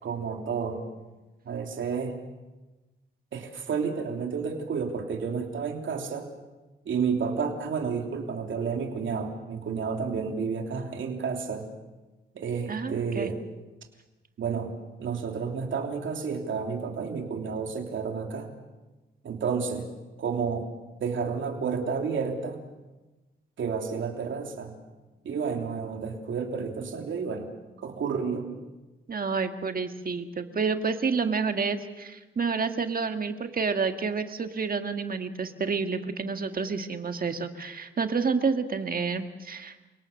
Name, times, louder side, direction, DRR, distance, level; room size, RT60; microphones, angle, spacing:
voice 1, 0.0-0.8 1.4-2.2 3.3-6.3 6.8-11.7 12.3-13.4 14.4-14.7 15.0-18.5 19.2-19.9 20.2-20.7 21.0-22.6 23.6-24.7 25.2-27.5 27.8-28.5, right 5 dB, 65° right, 3 dB, 3.2 m, -31 dB
voice 2, 12.7-13.3 29.1-39.7, right 5 dB, 45° right, 7 dB, 1.9 m, -29 dB
29.0 x 18.5 x 6.7 m, 1.1 s
cardioid pair, 75°, 21 cm